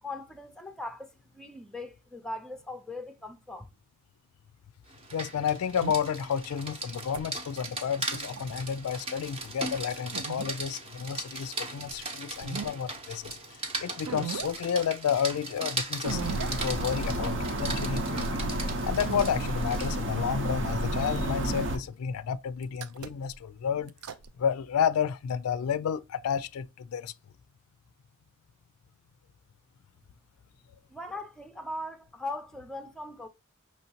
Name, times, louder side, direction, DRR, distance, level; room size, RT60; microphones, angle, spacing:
voice 1, 0.0-3.7 30.9-33.3, left 2 dB, 5° left, 0.5 m, -39 dB
Rain, 4.9-20.0, right 2 dB, 25° right, 0.8 m, -38 dB
voice 2, 5.1-18.4 18.9-23.9 24.4-27.1, left 7 dB, 75° left, 0.3 m, -31 dB
sound 1, 5.8-6.0 6.9-7.2 8.1-8.5 10.1-10.6 11.9-12.0 12.3-12.7 13.2-13.3 14.1-14.5 16.0-16.5 17.0-17.1 19.0-19.4 21.1-21.8 22.6-23.4 23.9-24.3, right 6 dB, 90° right, 0.5 m, -37 dB
sound 2, 16.1-21.8, right 1 dB, 60° right, 0.9 m, -31 dB
5.6 x 3.1 x 2.8 m
head